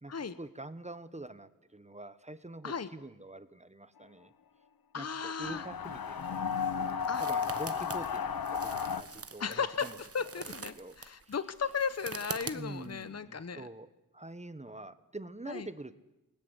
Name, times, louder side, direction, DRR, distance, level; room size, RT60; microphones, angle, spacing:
voice 1, 0.0-4.3 4.9-6.6 7.2-10.0 10.7-11.0 11.3-11.4 12.5-13.9 14.1-16.0, right 2 dB, 20° right, 13 dB, 1.2 m, -45 dB
voice 2, 4.9-5.7 7.1-7.2 9.4-13.7 15.5-15.7, left 6 dB, 45° left, 14 dB, 1.0 m, -36 dB
sound 1, 5.4-9.0, left 7 dB, 80° left, 1.1 m, -33 dB
sound 2, 5.8-13.0, right 4 dB, 40° right, 1.3 m, -45 dB
28.5 x 21.0 x 8.2 m, 0.98 s
wide cardioid pair, 80°, 35 cm